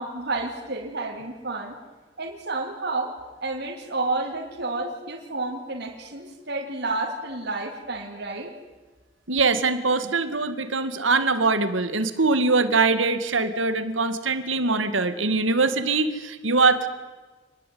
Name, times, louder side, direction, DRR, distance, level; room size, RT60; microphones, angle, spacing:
voice 1, 0.0-1.8 2.2-3.1 3.4-8.5, right 2 dB, 60° right, 0 dB, 3.3 m, -30 dB
voice 2, 9.3-16.9, right 3 dB, 85° right, 10 dB, 2.1 m, -22 dB
27.0 x 20.5 x 9.5 m, 1.3 s
head